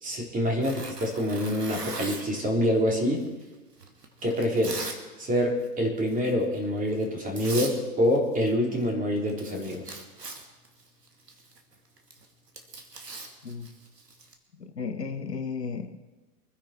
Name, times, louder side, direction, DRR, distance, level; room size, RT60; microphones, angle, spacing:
voice 1, 0.0-3.3 4.2-4.8 5.2-9.9, equal, 15° right, 0 dB, 3.7 m, -26 dB
Tearing, 0.6-2.4 3.1-5.0 5.3-5.7 6.1-6.3 7.0-7.1 7.4-7.8 8.0-8.9 9.2-14.3, right 3 dB, 75° right, 2.5 m, -40 dB
voice 2, 14.6-16.0, left 5 dB, 75° left, 8 dB, 1.4 m, -34 dB
25.0 x 10.0 x 4.6 m, 1.2 s
figure-of-eight pair, 100°, 48 cm